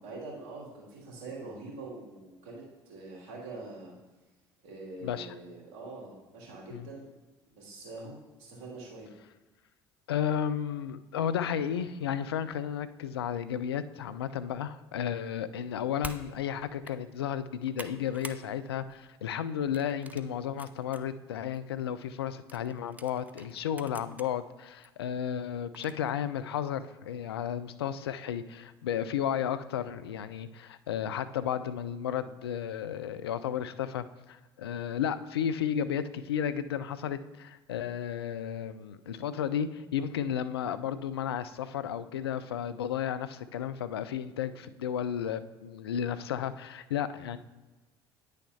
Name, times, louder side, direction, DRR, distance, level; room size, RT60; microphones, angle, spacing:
voice 1, 0.0-3.9 4.6-7.1 7.5-9.1, right 2 dB, 60° right, -5 dB, 2.6 m, -44 dB
voice 2, 10.1-47.4, left 9 dB, 75° left, 13 dB, 0.4 m, -33 dB
sound 1, 16.0-16.3 16.7-17.0 17.4-18.4 18.8-19.1 19.7-21.0 21.5-21.6 22.5-24.3 24.8-24.9 25.7-26.1, right 3 dB, 10° right, 0.5 m, -46 dB
9.5 x 6.4 x 2.8 m, 1.2 s
figure-of-eight pair, 60°, 13 cm